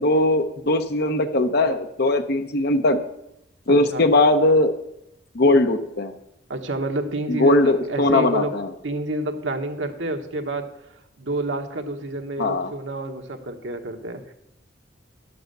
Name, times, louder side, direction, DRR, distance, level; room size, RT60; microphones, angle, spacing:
voice 1, 0.0-3.0 3.7-4.7 5.3-6.1 7.3-8.7 12.4-12.7, left 2 dB, 60° left, 7 dB, 0.9 m, -19 dB
voice 2, 3.7-4.0 6.5-8.5 8.8-10.7 11.2-14.3, right 2 dB, 80° right, 5 dB, 1.3 m, -29 dB
11.5 x 7.0 x 6.6 m, 0.82 s
head